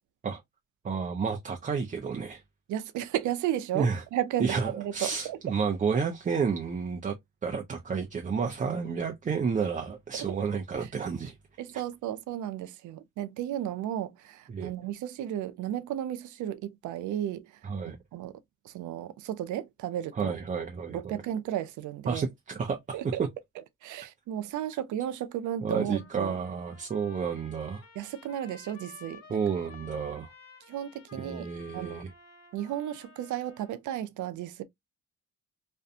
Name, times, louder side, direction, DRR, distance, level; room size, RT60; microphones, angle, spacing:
voice 1, 0.8-2.4 3.7-4.0 4.4-7.1 7.4-11.4 14.5-14.7 17.6-18.0 20.1-21.2 22.1-23.0 25.6-27.8 29.3-30.3 31.1-32.1, right 5 dB, 25° right, 0.5 m, -31 dB
voice 2, 2.7-5.4 10.3-10.4 10.8-10.9 11.6-18.3 18.6-20.3 20.9-22.2 22.9-23.2 23.8-26.4 28.0-29.4 30.7-31.5 31.7-32.0 32.5-34.6, right 11 dB, 75° right, 0.5 m, -34 dB
Trumpet, 25.9-33.8, left 4 dB, 60° left, 1.0 m, -53 dB
2.5 x 2.2 x 2.6 m
cardioid pair, 90°, 30 cm